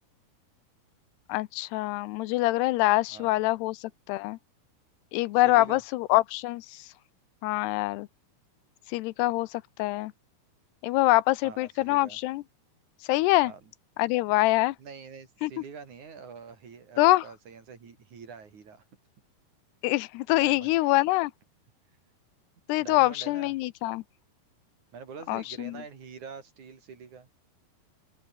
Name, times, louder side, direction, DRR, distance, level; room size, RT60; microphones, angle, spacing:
voice 1, 1.3-3.8 4.1-4.4 5.1-6.8 7.4-8.1 8.9-10.1 10.8-12.4 13.1-13.5 14.0-14.8 15.4-15.5 17.0-17.2 19.8-21.3 22.7-24.0 25.3-25.7, left 19 dB, 85° left, 2.8 m, -25 dB
voice 2, 3.1-3.4 5.3-5.8 11.4-12.2 13.4-13.7 14.8-18.8 20.3-20.7 22.7-23.5 24.9-27.3, right 6 dB, 50° right, 4.5 m, -45 dB
open air
omnidirectional pair, 4.7 m